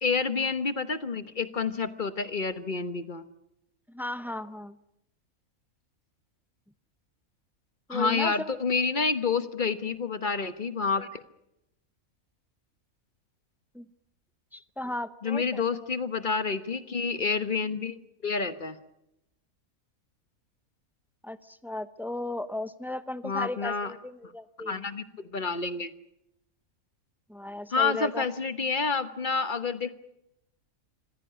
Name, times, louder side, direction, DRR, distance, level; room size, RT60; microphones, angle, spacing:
voice 1, 0.0-3.2 7.9-11.2 15.2-18.8 23.2-23.9 24.7-25.9 27.7-29.9, left 4 dB, 40° left, 11 dB, 1.2 m, -29 dB
voice 2, 3.9-4.8 7.9-8.6 13.7-13.9 14.5-15.6 21.2-24.8 27.3-28.2, left 1 dB, ahead, 12 dB, 0.5 m, -35 dB
25.5 x 16.0 x 10.0 m, 0.86 s
omnidirectional pair, 1.5 m